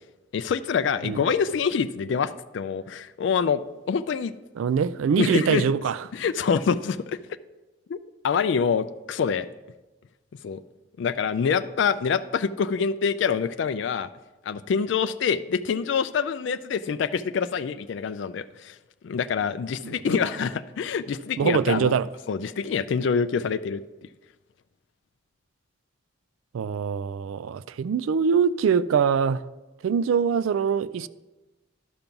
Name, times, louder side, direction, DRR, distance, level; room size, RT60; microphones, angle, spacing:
voice 1, 0.3-3.6 3.9-4.3 5.2-5.6 6.1-7.2 7.9-8.0 8.2-9.5 10.4-10.6 11.0-14.1 14.4-18.8 19.0-22.0 22.3-23.8, left 6 dB, 60° left, 0.3 m, -26 dB
voice 2, 4.6-6.0 19.8-19.9 21.4-22.1 26.5-29.4 29.8-31.1, right 6 dB, 75° right, 0.3 m, -23 dB
12.0 x 5.3 x 5.8 m
head